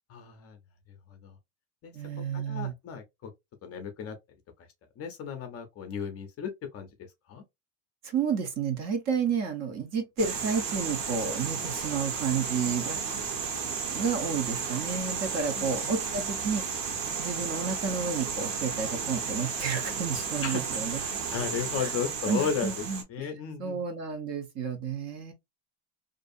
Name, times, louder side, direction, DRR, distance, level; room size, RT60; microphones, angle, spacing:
voice 1, 0.1-0.6 1.1-1.4 1.8-1.9 2.3-3.3 3.6-4.2 5.0-6.9 7.3-7.4 15.8-15.9 20.4-20.7 20.9-23.8, left 7 dB, 30° left, 0.5 m, -35 dB
voice 2, 1.9-2.7 8.0-13.1 13.6-16.9 17.2-21.0 21.8-21.9 22.3-23.3 23.6-25.3, right 6 dB, 35° right, 0.5 m, -31 dB
sound 1, 10.2-23.0, right 6 dB, 60° right, 1.0 m, -33 dB
2.5 x 2.2 x 2.5 m
cardioid pair, 145°, 47 cm